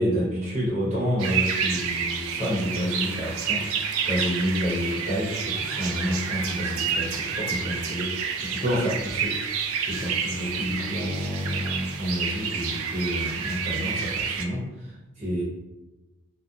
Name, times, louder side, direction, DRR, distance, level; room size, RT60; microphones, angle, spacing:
voice 1, 0.0-3.6 4.1-15.4, equal, 35° right, -7 dB, 0.9 m, -29 dB
sound 1, 1.2-14.5, right 6 dB, 90° right, 0.3 m, -29 dB
2.8 x 2.2 x 2.4 m, 1.0 s
head